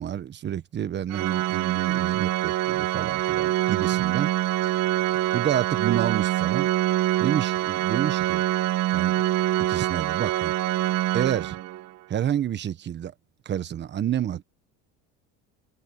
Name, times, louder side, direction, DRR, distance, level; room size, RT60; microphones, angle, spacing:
voice 1, 0.0-4.3 4.6-4.7 5.3-6.7 7.2-8.4 8.9-9.2 9.6-10.5 11.1-11.6 12.1-13.1 13.4-14.4, right 10 dB, 35° right, 1.3 m, -29 dB
Organ, 1.1-11.9, right 14 dB, 60° right, 2.0 m, -25 dB
cardioid pair, 125°, 30 cm